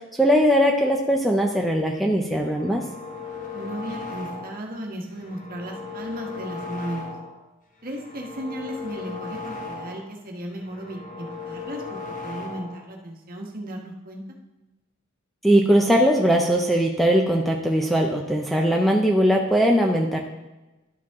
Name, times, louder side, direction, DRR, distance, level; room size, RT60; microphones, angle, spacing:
voice 1, 0.2-2.8 15.4-20.2, equal, ahead, 1 dB, 0.6 m, -20 dB
sound 1, 2.3-4.7 5.1-7.4 7.8-10.2 10.5-12.9, left 4 dB, 40° left, 1.0 m, -37 dB
voice 2, 3.5-7.1 7.8-14.2, right 1 dB, 45° right, 1 dB, 1.3 m, -35 dB
12.0 x 5.0 x 3.6 m, 1.1 s
head